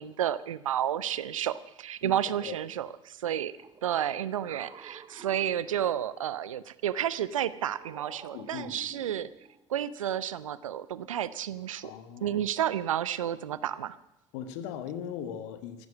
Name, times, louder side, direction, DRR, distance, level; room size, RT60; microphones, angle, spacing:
voice 1, 0.0-3.5 3.8-9.3 9.7-11.9 12.2-14.0, right 10 dB, 80° right, 17 dB, 0.7 m, -31 dB
sound 1, 3.6-6.3 6.9-9.6, right 5 dB, 25° right, 1.1 m, -51 dB
voice 2, 8.3-8.8 11.8-12.4 14.3-15.9, left 9 dB, 65° left, 9 dB, 1.7 m, -39 dB
15.0 x 12.0 x 7.4 m, 0.95 s
figure-of-eight pair, 65°, 17 cm